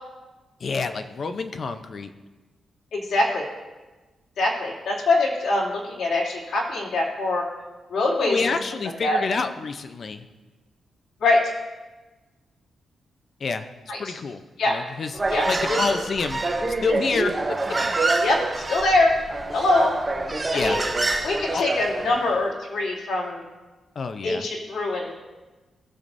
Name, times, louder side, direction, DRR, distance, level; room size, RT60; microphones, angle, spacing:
voice 1, 0.6-2.1 8.2-10.2 13.4-13.7 14.0-14.4 14.7-15.2 15.5-16.4 16.8-17.5 18.0-18.2 20.5-20.8 21.5-21.6 24.0-24.4, left 4 dB, 45° left, 9 dB, 0.6 m, -28 dB
voice 2, 2.9-3.5 4.4-7.4 7.9-8.4 9.0-9.2 11.2-11.4 13.9-14.1 14.6-14.8 15.3-16.0 18.2-19.1 19.5-19.9 20.5-20.8 21.2-23.4 24.2-25.1, left 2 dB, 80° left, -6 dB, 2.5 m, -23 dB
Human voice, 15.1-22.2, right 2 dB, 20° right, 0.8 m, -26 dB
17.5 x 6.8 x 2.6 m, 1.2 s
wide cardioid pair, 155°, 0 cm